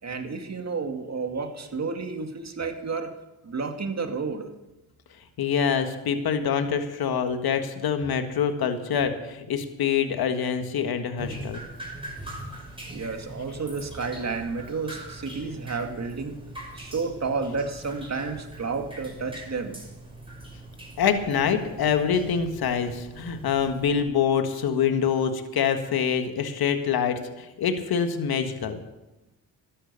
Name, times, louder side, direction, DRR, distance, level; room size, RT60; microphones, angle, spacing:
voice 1, 0.0-3.1 3.4-4.5 12.9-16.4 16.7-19.8, right 4 dB, 40° right, 5 dB, 2.3 m, -31 dB
voice 2, 5.4-11.6 21.0-28.8, left 7 dB, 65° left, 7 dB, 1.7 m, -25 dB
Drip, 11.2-24.0, right 1 dB, 15° right, 5.9 m, -42 dB
13.0 x 11.0 x 6.9 m, 1.0 s
supercardioid pair, 60°, 40 cm